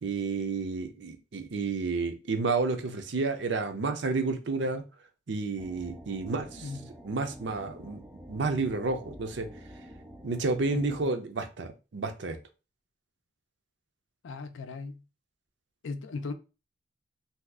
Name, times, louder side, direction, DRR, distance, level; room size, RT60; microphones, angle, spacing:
voice 1, 0.0-4.8 5.3-6.7 7.0-8.0 8.3-9.5 10.2-12.4, right 3 dB, 70° right, 0.5 m, -30 dB
sound 1, 5.6-11.0, equal, 10° right, 0.4 m, -48 dB
voice 2, 10.7-11.1 14.2-15.0 15.8-16.3, left 4 dB, 90° left, 0.4 m, -38 dB
2.7 x 2.3 x 3.4 m
head